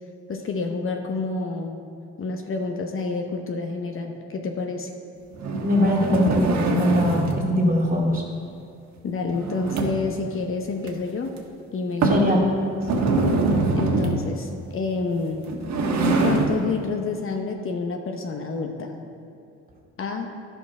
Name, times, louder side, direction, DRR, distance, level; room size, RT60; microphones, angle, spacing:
voice 1, 0.3-1.8 2.2-4.9 9.0-11.4 11.7-12.2 13.7-15.4 16.2-18.9 20.0-20.3, left 4 dB, 45° left, 4 dB, 0.9 m, -28 dB
sound 1, 5.3-7.5 9.3-10.2 10.8-10.9 11.4-11.5 12.0-12.3 12.8-14.3 15.3-16.6, right 3 dB, 65° right, 1.3 m, -23 dB
voice 2, 5.6-8.2 12.0-12.4, equal, 30° right, -2 dB, 2.3 m, -21 dB
11.0 x 5.4 x 4.8 m, 2.4 s
supercardioid pair, 70°, 30 cm